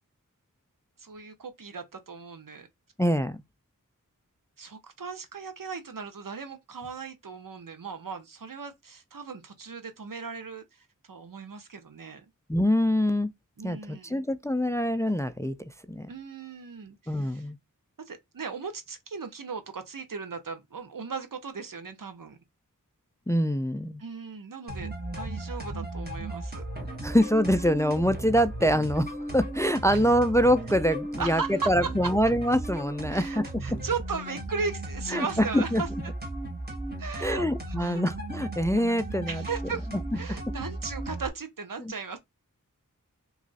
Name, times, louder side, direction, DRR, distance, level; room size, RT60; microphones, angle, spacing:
voice 1, 1.0-2.7 4.6-12.3 13.6-14.2 16.1-17.5 18.1-22.4 24.0-26.6 30.7-30.8 31.2-32.1 33.1-36.1 37.0-38.0 39.3-42.2, right 5 dB, 75° right, 0.7 m, -37 dB
voice 2, 3.0-3.4 12.5-13.3 13.6-16.1 17.1-17.6 23.3-24.0 27.0-33.5 35.1-35.8 37.2-39.4 41.8-41.9, equal, 10° left, 0.3 m, -25 dB
sound 1, 24.7-41.3, right 1 dB, 30° right, 1.2 m, -36 dB
3.0 x 2.4 x 3.9 m
wide cardioid pair, 45°, 33 cm